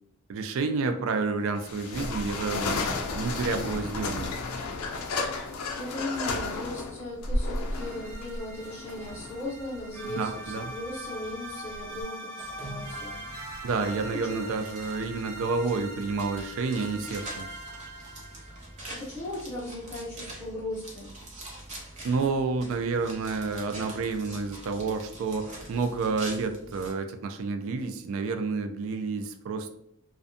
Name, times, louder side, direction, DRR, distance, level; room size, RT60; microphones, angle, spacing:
voice 1, 0.3-2.8 3.1-4.3 10.0-10.7 13.6-17.5 22.0-29.7, right 4 dB, 60° right, 8 dB, 0.3 m, -30 dB
sound 1, 1.6-12.0, left 3 dB, 80° left, 0.4 m, -33 dB
voice 2, 5.7-13.2 14.2-14.4 18.4-18.6 19.0-21.1, left 1 dB, 10° left, -8 dB, 0.6 m, -37 dB
sound 2, 7.7-19.0, right 1 dB, 80° right, 0.9 m, -42 dB
sound 3, 12.4-26.9, right 1 dB, 30° right, 0.7 m, -44 dB
2.5 x 2.1 x 2.5 m, 0.75 s
head